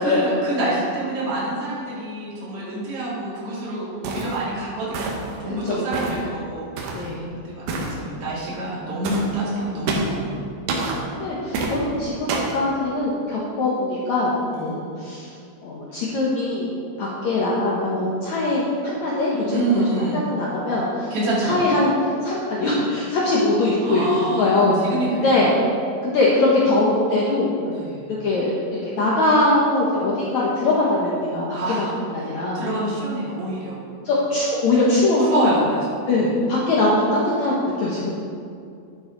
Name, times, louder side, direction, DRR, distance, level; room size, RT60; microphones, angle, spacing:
voice 1, 0.0-10.4 14.5-14.8 19.5-20.2 21.1-21.6 23.8-25.5 27.7-28.0 31.5-31.9 32.2-33.8 35.2-36.1, right 1 dB, 35° right, -8 dB, 3.5 m, -27 dB
sound 1, 4.0-4.4 4.9-5.4 5.9-6.2 6.8-7.1 7.7-7.9 9.0-9.3 9.9-10.2 10.7-11.0 11.5-11.8 12.3-12.6, right 3 dB, 65° right, 2.7 m, -27 dB
voice 2, 5.6-6.1 6.9-7.3 11.2-15.3 15.6-16.7 17.0-19.8 20.1-21.1 21.4-21.9 22.2-24.1 24.4-24.8 25.2-25.5 26.0-27.6 28.2-31.9 32.1-32.6 34.1-35.5 36.1-38.1, left 2 dB, 80° left, -5 dB, 1.6 m, -22 dB
11.5 x 10.0 x 4.0 m, 2.4 s
omnidirectional pair, 5.2 m